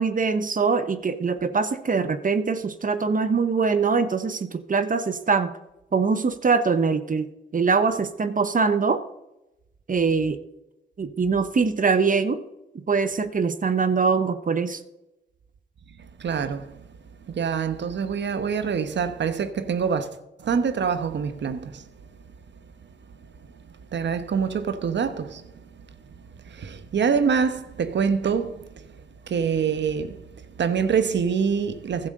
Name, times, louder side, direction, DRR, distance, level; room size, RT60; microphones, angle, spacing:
voice 1, 0.0-5.6 5.9-9.0 9.9-10.4 11.0-12.4 12.7-14.8, right 5 dB, 45° right, 1.0 m, -23 dB
voice 2, 16.2-16.8 17.3-20.1 20.4-21.9 23.9-25.4 26.4-28.6 29.3-30.2 30.6-32.1, right 6 dB, 70° right, 1.2 m, -25 dB
15.0 x 11.0 x 3.8 m
cardioid pair, 55°, 19 cm